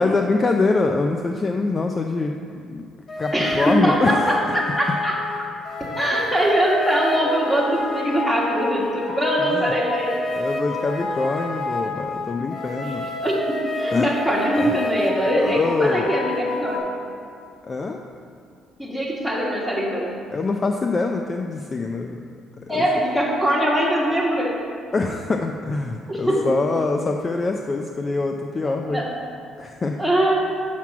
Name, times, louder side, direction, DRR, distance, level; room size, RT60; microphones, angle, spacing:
voice 1, 0.0-2.3 2.7-2.8 3.2-4.3 9.5-9.7 10.3-13.1 13.9-14.1 14.6-14.7 15.3-16.2 17.7-18.0 20.3-22.2 22.7-22.8 24.9-29.1 29.6-30.0, left 3 dB, 30° left, 4 dB, 0.4 m, -24 dB
sound 1, 3.1-16.8, left 2 dB, 50° left, 1.3 m, -29 dB
voice 2, 3.3-5.2 5.9-10.2 12.8-16.9 18.8-20.2 22.7-24.6 26.1-26.5 28.6-29.1 30.0-30.4, equal, 5° left, -3 dB, 1.6 m, -22 dB
5.9 x 5.9 x 6.0 m, 2.4 s
cardioid pair, 100°, 0 cm